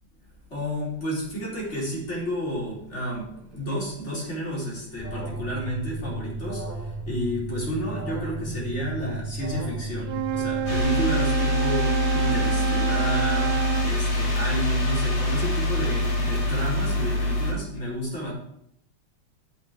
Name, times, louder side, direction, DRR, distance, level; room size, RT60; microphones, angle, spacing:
voice 1, 0.5-18.3, equal, 30° left, -4 dB, 4.3 m, -31 dB
Alarm, 5.0-10.8, right 2 dB, 15° left, 2.9 m, -34 dB
Wind instrument woodwind instrument, 10.0-14.0, right 10 dB, 70° right, 1.0 m, -28 dB
sound 1, 10.7-17.5, left 1 dB, 85° left, 3.2 m, -25 dB
8.0 x 6.4 x 8.2 m, 0.73 s
omnidirectional pair, 2.2 m